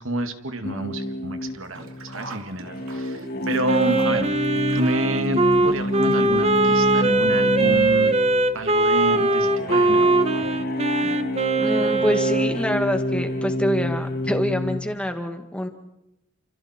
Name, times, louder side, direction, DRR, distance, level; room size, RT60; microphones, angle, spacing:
voice 1, 0.0-4.3 4.7-8.1 8.5-10.2, right 1 dB, 65° right, 7 dB, 2.3 m, -28 dB
sound 1, 0.6-14.8, left 1 dB, 45° left, 2.5 m, -28 dB
Sink (filling or washing), 1.6-6.6 6.9-7.0 8.0-8.1 8.4-8.5, right 3 dB, 85° right, 3.2 m, -43 dB
Wind instrument woodwind instrument, 3.6-12.5, right 2 dB, 30° right, 1.2 m, -21 dB
voice 2, 11.6-15.7, equal, 5° left, 5 dB, 2.1 m, -26 dB
30.0 x 28.0 x 4.5 m, 0.86 s
head